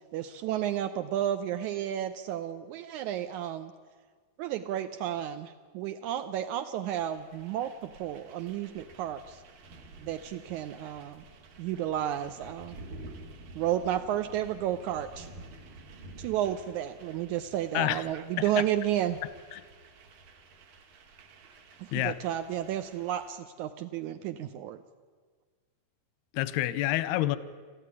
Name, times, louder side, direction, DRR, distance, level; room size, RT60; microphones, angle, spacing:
voice 1, 0.1-3.7 4.4-9.4 10.0-11.2 11.6-12.7 13.5-15.3 16.2-19.2 21.8-24.8, right 11 dB, 85° right, 9 dB, 1.7 m, -32 dB
sound 1, 6.8-23.3, right 2 dB, 65° right, 3.8 m, -51 dB
voice 2, 17.7-18.0 18.6-18.7 19.5-19.6 21.9-22.2 26.3-27.4, left 15 dB, 90° left, 16 dB, 2.8 m, -28 dB
27.5 x 14.0 x 9.7 m, 1.6 s
omnidirectional pair, 4.4 m